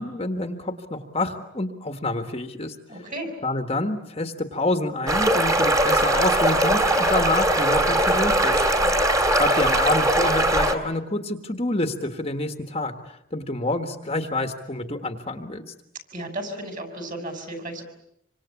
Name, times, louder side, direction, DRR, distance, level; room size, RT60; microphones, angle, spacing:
voice 1, 0.0-2.7 3.4-8.6 9.3-15.7, left 2 dB, 30° left, 6 dB, 1.6 m, -28 dB
voice 2, 2.9-3.3 8.8-9.1 16.1-17.8, right 1 dB, 35° right, 6 dB, 6.2 m, -34 dB
sound 1, 5.1-10.8, right 1 dB, 15° right, 2.6 m, -20 dB
27.0 x 25.5 x 8.5 m, 0.78 s
head